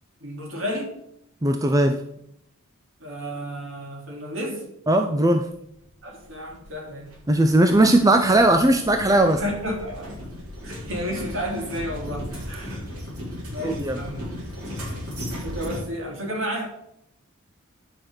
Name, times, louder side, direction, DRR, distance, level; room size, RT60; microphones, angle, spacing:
voice 1, 0.2-0.9 3.0-4.6 6.0-7.1 7.7-7.9 9.4-10.2 10.6-12.8 13.5-14.3 15.4-16.7, equal, 60° right, 0 dB, 3.2 m, -32 dB
voice 2, 1.4-2.0 4.9-5.5 7.3-9.4 13.6-14.0, right 1 dB, 15° right, 7 dB, 0.5 m, -18 dB
sound 1, 6.2-15.8, left 1 dB, 80° right, 4.6 m, -36 dB
9.9 x 5.9 x 6.6 m, 0.75 s
head